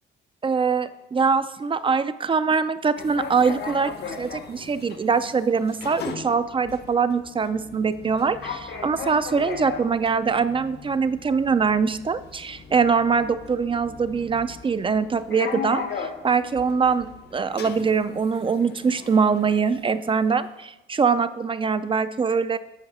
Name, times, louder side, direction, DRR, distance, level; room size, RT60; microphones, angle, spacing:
voice 1, 0.4-22.6, right 5 dB, 25° right, 12 dB, 0.3 m, -23 dB
sound 1, 3.0-20.5, left 5 dB, 55° left, 0.9 m, -38 dB
8.5 x 4.7 x 4.8 m, 0.94 s
cardioid pair, 90°, 20 cm